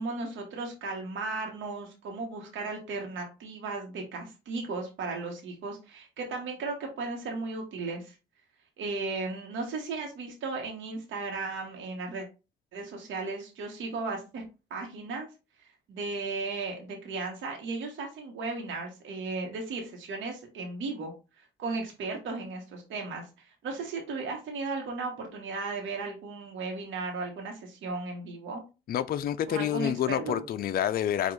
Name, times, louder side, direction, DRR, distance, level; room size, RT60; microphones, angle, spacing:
voice 1, 0.0-8.1 8.8-12.3 12.7-14.4 14.7-15.3 15.6-28.6 29.5-30.4, right 3 dB, 75° right, 1.1 m, -36 dB
voice 2, 28.9-31.3, left 10 dB, 50° left, 0.4 m, -28 dB
4.9 x 2.4 x 3.8 m
cardioid pair, 90°, 20 cm